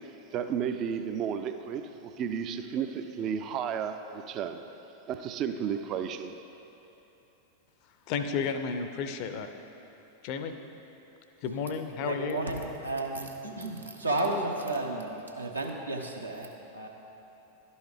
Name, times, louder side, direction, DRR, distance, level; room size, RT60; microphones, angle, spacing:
voice 1, 0.3-4.6 5.1-6.3, right 7 dB, 35° right, 8 dB, 0.3 m, -33 dB
voice 2, 8.1-9.5 10.2-10.5 11.4-12.4, left 6 dB, 45° left, 8 dB, 0.5 m, -32 dB
voice 3, 12.0-16.9, right 2 dB, 80° right, 1 dB, 0.8 m, -33 dB
11.5 x 5.4 x 3.4 m, 2.9 s
figure-of-eight pair, 90°, 0 cm